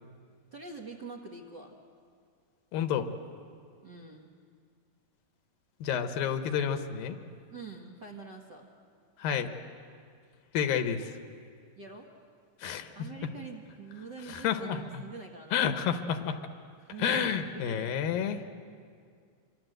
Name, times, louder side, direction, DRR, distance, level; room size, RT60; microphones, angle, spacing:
voice 1, 0.5-1.8 3.8-4.3 7.5-8.7 11.8-12.1 12.9-15.6 16.8-17.9, right 4 dB, 45° right, -1 dB, 1.5 m, -45 dB
voice 2, 2.7-3.1 5.8-7.2 9.2-9.5 10.5-11.1 12.6-12.9 14.3-15.0 15.5-16.4 17.0-18.4, left 8 dB, 80° left, 8 dB, 2.9 m, -30 dB
26.5 x 24.5 x 7.9 m, 2.2 s
omnidirectional pair, 4.1 m